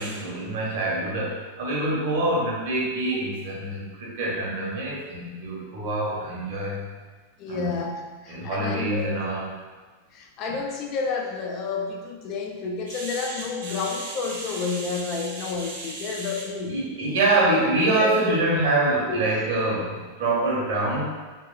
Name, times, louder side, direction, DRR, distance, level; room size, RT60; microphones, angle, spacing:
voice 1, 0.0-6.9 7.4-7.8 8.3-9.5 10.5-10.6 12.9-21.0, right 2 dB, 50° right, -4 dB, 0.9 m, -26 dB
voice 2, 7.4-8.0 8.2-9.1 10.1-16.8 18.0-18.2 19.1-19.2, left 4 dB, 35° left, 1 dB, 0.4 m, -30 dB
3.0 x 2.8 x 2.5 m, 1.3 s
figure-of-eight pair, 90°, 0 cm